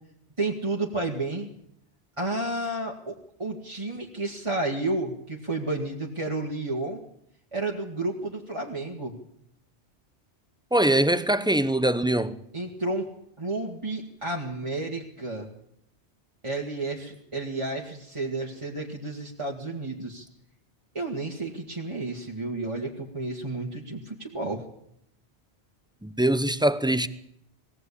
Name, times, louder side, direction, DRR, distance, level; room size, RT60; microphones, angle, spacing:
voice 1, 0.4-1.5 2.2-7.0 7.5-9.2 12.5-13.1 13.4-15.5 16.4-20.3 20.9-24.7, right 2 dB, 25° right, 2.0 m, -31 dB
voice 2, 10.7-12.4 26.0-27.1, right 1 dB, 5° right, 0.7 m, -23 dB
21.5 x 17.0 x 8.5 m
omnidirectional pair, 1.2 m